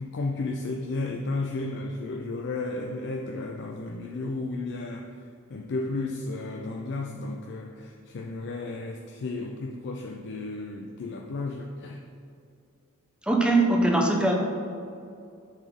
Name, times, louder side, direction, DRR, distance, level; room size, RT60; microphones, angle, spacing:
voice 1, 0.0-12.1, left 2 dB, 50° left, 2 dB, 0.4 m, -33 dB
voice 2, 13.3-14.3, right 2 dB, 5° right, 0 dB, 0.7 m, -21 dB
9.0 x 4.1 x 3.6 m, 2.5 s
head